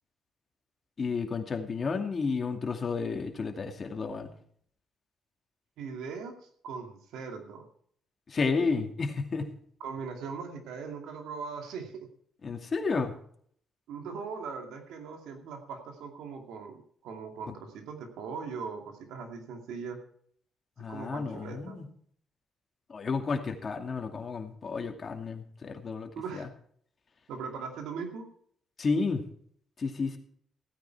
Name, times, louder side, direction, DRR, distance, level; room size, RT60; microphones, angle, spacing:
voice 1, 1.0-4.3 8.3-9.5 12.4-13.1 20.8-21.9 22.9-26.5 28.8-29.2 29.8-30.2, left 4 dB, 40° left, 4 dB, 2.4 m, -31 dB
voice 2, 5.8-6.3 6.6-7.7 9.8-12.1 13.9-20.0 20.9-21.8 26.1-26.5 27.3-28.3, right 5 dB, 85° right, 4 dB, 2.5 m, -40 dB
16.0 x 9.4 x 4.6 m, 0.62 s
cardioid pair, 90°, 0 cm